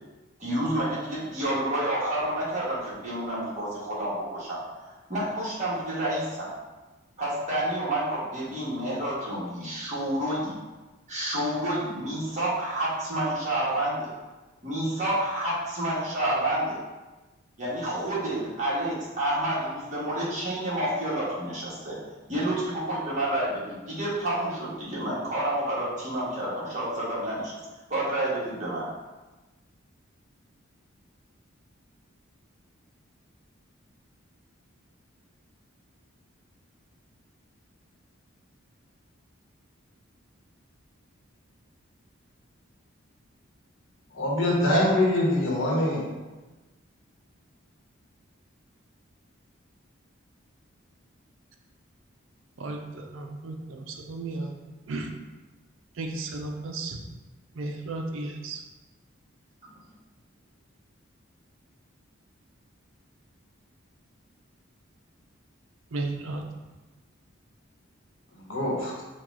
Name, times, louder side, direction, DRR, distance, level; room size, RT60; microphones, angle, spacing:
voice 1, 0.4-4.6 5.1-6.5 7.2-10.5 11.1-14.1 14.6-16.8 17.6-22.0 22.3-27.5 27.9-28.9, right 1 dB, 35° right, -8 dB, 1.3 m, -29 dB
voice 2, 44.1-46.0 68.4-69.0, left 1 dB, 70° left, -4 dB, 1.1 m, -24 dB
voice 3, 52.6-54.5 54.9-55.1 55.9-57.0 57.5-58.6 65.9-66.4, right 2 dB, 70° right, 3 dB, 0.5 m, -34 dB
4.6 x 2.3 x 3.6 m, 1.2 s
head